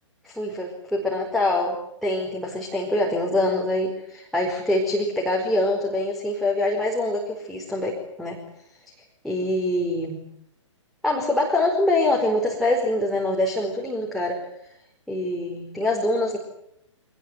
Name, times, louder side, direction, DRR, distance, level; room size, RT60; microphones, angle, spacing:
voice 1, 0.2-8.4 9.2-10.2 11.0-14.4 15.1-16.4, left 1 dB, ahead, -2 dB, 4.7 m, -24 dB
25.5 x 20.5 x 9.6 m, 0.78 s
figure-of-eight pair, 125°, 16 cm